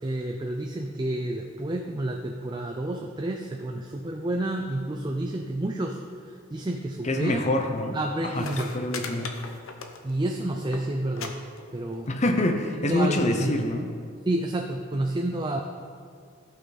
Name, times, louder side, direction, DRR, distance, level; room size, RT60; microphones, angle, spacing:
voice 1, 0.0-6.0 6.3-7.5 7.9-8.7 10.0-11.4 11.7-12.1 12.9-13.5 14.3-15.6, right 1 dB, 20° right, 2 dB, 0.4 m, -29 dB
voice 2, 7.0-8.0 8.2-8.5 8.7-9.3 12.1-13.9, left 1 dB, 30° left, 4 dB, 0.8 m, -25 dB
sound 1, 8.4-10.3 10.6-10.8 11.2-11.3 11.6-12.1 12.9-13.0, left 5 dB, 75° left, 0.9 m, -37 dB
15.5 x 5.7 x 4.2 m, 2.2 s
head